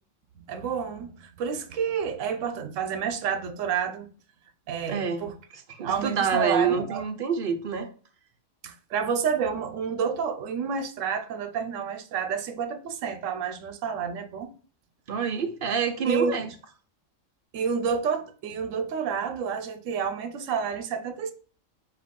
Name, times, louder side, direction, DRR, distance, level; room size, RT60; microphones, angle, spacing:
voice 1, 0.4-4.1 4.7-5.3 5.7-7.0 8.6-14.5 16.1-16.3 17.5-21.3, right 6 dB, 85° right, 1.0 m, -29 dB
voice 2, 4.9-5.2 5.8-7.9 15.1-16.5, right 6 dB, 60° right, 0.6 m, -27 dB
4.7 x 2.4 x 3.5 m
omnidirectional pair, 1.3 m